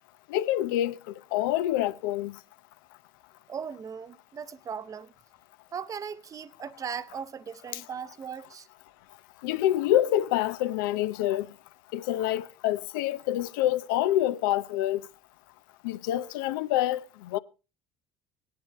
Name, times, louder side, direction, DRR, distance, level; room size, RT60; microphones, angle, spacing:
voice 1, 0.3-2.4 7.7-7.8 9.4-11.5 11.9-15.0 15.8-17.4, left 13 dB, 90° left, 0.6 m, -27 dB
voice 2, 3.5-5.1 5.7-8.7, right 7 dB, 35° right, 0.7 m, -38 dB
18.0 x 10.5 x 3.4 m
supercardioid pair, 90°, 11 cm